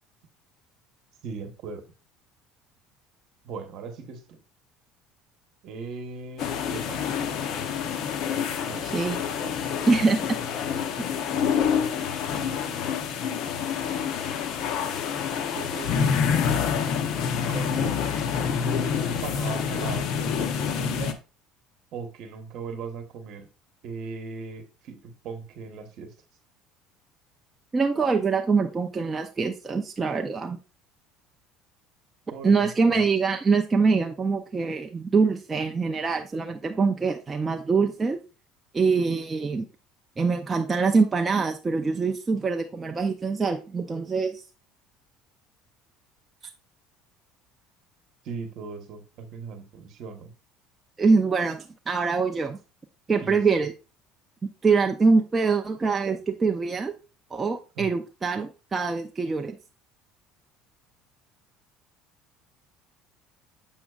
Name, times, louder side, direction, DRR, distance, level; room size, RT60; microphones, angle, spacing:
voice 1, 1.2-1.8 3.4-4.4 5.6-7.1 8.6-9.8 12.2-12.9 13.2-14.0 15.5-16.4 17.5-18.0 19.0-21.2 21.9-23.5 23.8-26.1 32.3-33.0 48.2-50.3 53.2-53.5 57.7-57.9, right 5 dB, 50° right, 1.1 m, -39 dB
sound 1, 6.4-21.1, left 7 dB, 50° left, 0.7 m, -27 dB
voice 2, 8.8-9.2 9.9-10.2 27.7-30.6 32.4-38.2 38.7-39.7 40.2-44.4 51.0-52.6 53.1-53.7 54.6-56.9 57.3-59.6, right 4 dB, 15° right, 0.4 m, -24 dB
7.2 x 6.1 x 2.3 m
cardioid pair, 150°, 0 cm